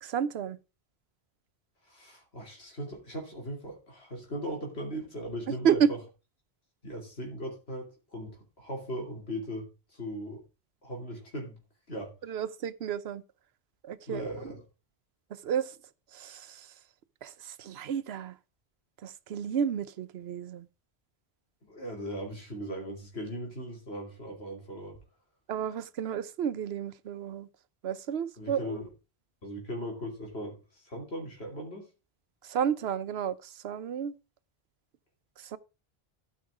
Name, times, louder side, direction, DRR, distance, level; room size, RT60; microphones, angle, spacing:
voice 1, 0.0-0.6 5.6-5.9 12.3-13.2 13.8-14.5 15.3-15.7 16.1-16.7 17.2-18.3 19.0-20.7 25.5-27.5 27.8-28.8 32.4-34.1 35.4-35.6, right 8 dB, 85° right, 0.9 m, -31 dB
voice 2, 1.8-6.0 6.8-10.4 10.8-11.6 11.9-12.3 14.1-14.6 21.6-25.0 28.4-28.9 29.4-31.9, equal, 80° left, 3.0 m, -39 dB
13.0 x 5.6 x 4.8 m
omnidirectional pair, 1.0 m